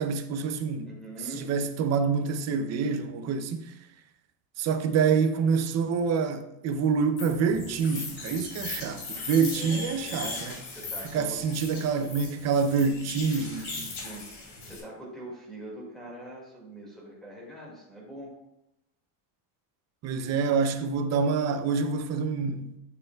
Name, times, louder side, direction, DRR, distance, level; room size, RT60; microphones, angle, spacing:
voice 1, 0.0-1.0 1.4-3.6 4.6-10.6 11.1-13.9 20.0-22.7, right 5 dB, 35° right, 0.5 m, -27 dB
voice 2, 0.8-1.6 9.5-11.4 14.0-14.3 14.6-18.3, right 1 dB, ahead, 2.0 m, -43 dB
sound 1, 7.2-14.8, left 3 dB, 80° left, 2.8 m, -39 dB
9.7 x 6.6 x 2.3 m
cardioid pair, 160°, 49 cm